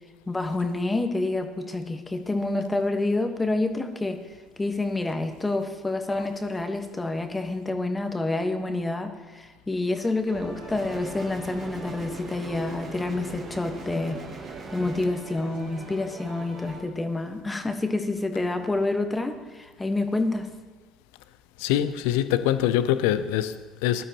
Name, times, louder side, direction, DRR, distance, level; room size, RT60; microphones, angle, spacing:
voice 1, 0.3-4.2 4.6-14.2 14.7-20.5, left 2 dB, 15° left, 1.3 m, -28 dB
sound 1, 10.2-16.8, right 3 dB, 75° right, 3.8 m, -44 dB
sound 2, 10.7-15.1, right 3 dB, 40° right, 1.6 m, -41 dB
voice 2, 21.6-24.0, left 11 dB, 70° left, 0.5 m, -24 dB
19.0 x 12.5 x 3.0 m
figure-of-eight pair, 55°, 0 cm